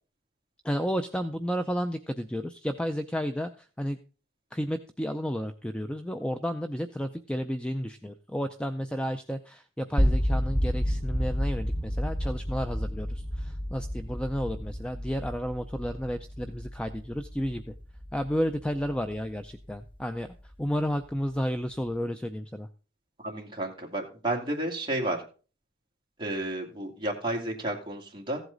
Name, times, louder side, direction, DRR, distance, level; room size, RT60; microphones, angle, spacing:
voice 1, 0.6-4.0 4.5-17.6 18.1-22.7, equal, 5° left, 7 dB, 0.4 m, -32 dB
sound 1, 10.0-20.0, equal, 25° left, 1.5 m, -30 dB
voice 2, 23.2-25.2 26.2-28.4, right 1 dB, 25° right, -1 dB, 2.3 m, -31 dB
15.0 x 7.9 x 3.9 m, 0.38 s
head